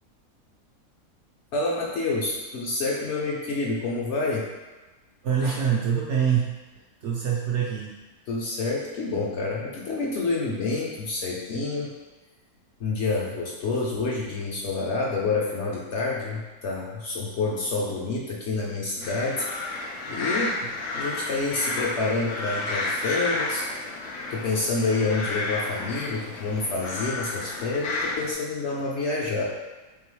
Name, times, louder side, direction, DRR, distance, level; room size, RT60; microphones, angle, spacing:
voice 1, 1.5-4.4 8.3-11.9 12.8-19.5 19.7-20.6 20.9-23.6 24.3-29.4, left 3 dB, 60° left, -4 dB, 0.8 m, -28 dB
voice 2, 5.2-6.5 7.0-8.0, right 7 dB, 65° right, -3 dB, 0.7 m, -25 dB
sound 1, 19.0-28.3, left 2 dB, 80° left, 1.1 m, -31 dB
3.8 x 3.3 x 3.1 m, 1.2 s
omnidirectional pair, 1.6 m